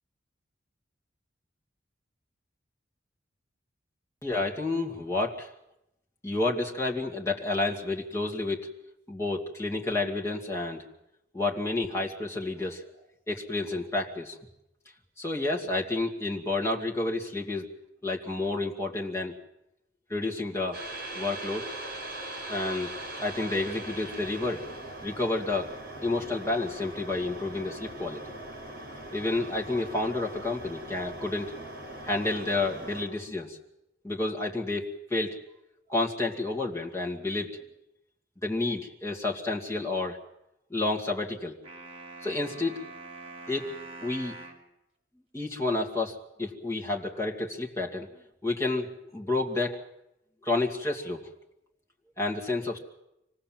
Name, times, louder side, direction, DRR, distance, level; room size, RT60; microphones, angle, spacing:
voice 1, 4.2-5.5 6.2-8.7 9.1-10.8 11.3-12.8 13.3-14.4 15.2-17.7 18.0-19.3 20.1-20.8 21.1-21.7 22.5-22.9 23.2-24.7 25.0-25.8 26.0-28.2 29.1-31.6 32.1-33.6 34.0-35.4 35.9-37.6 38.4-40.2 40.7-41.6 42.2-42.8 43.5-43.7 44.0-44.3 45.3-48.1 48.4-49.8 50.4-51.3 52.2-52.8, left 2 dB, 15° left, -2 dB, 2.3 m, -30 dB
sound 1, 20.7-33.1, right 1 dB, 55° right, 5.9 m, -41 dB
sound 2, 41.6-44.7, right 2 dB, 30° right, 2.7 m, -44 dB
25.5 x 18.5 x 7.6 m, 0.84 s
head